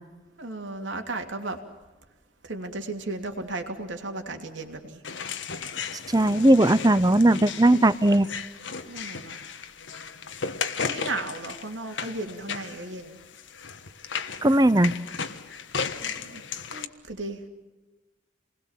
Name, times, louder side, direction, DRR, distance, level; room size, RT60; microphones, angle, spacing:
voice 1, 0.4-1.6 2.5-5.0 8.9-9.4 10.8-13.2 16.0-16.4 16.7-17.4, right 2 dB, 75° right, 5 dB, 2.9 m, -35 dB
sound 1, 5.0-16.8, left 6 dB, 75° left, 1.4 m, -35 dB
voice 2, 6.1-8.3 14.4-14.9, right 1 dB, 20° right, 16 dB, 0.7 m, -18 dB
29.0 x 20.5 x 7.4 m, 1.2 s
head